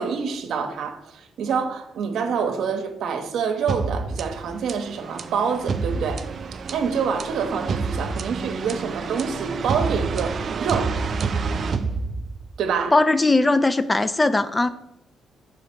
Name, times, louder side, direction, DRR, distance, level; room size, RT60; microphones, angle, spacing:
voice 1, 0.0-6.2 6.7-11.0 12.6-13.0, right 6 dB, 70° right, 6 dB, 0.8 m, -26 dB
sound 1, 3.7-12.6, right 4 dB, 50° right, 0.4 m, -28 dB
voice 2, 12.9-14.7, left 2 dB, 20° left, 12 dB, 0.4 m, -19 dB
5.1 x 3.8 x 5.8 m, 0.82 s
cardioid pair, 90°, 0 cm